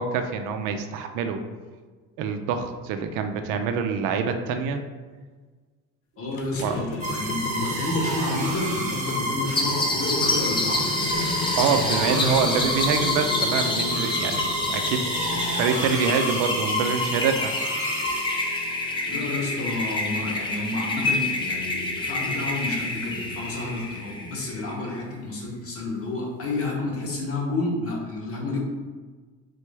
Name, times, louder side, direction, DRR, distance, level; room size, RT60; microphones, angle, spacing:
voice 1, 0.0-1.4 2.2-4.8 6.6-6.7 11.6-17.5, right 5 dB, 70° right, 6 dB, 0.5 m, -26 dB
voice 2, 6.2-11.0 19.1-28.6, left 2 dB, 40° left, -1 dB, 1.1 m, -30 dB
sound 1, 6.3-20.6, left 3 dB, 75° left, 0.6 m, -35 dB
sound 2, 7.0-18.8, equal, 20° right, 1.0 m, -30 dB
sound 3, 9.6-24.8, left 2 dB, 15° left, 0.4 m, -28 dB
3.8 x 3.2 x 3.3 m, 1.4 s
cardioid pair, 135°, 34 cm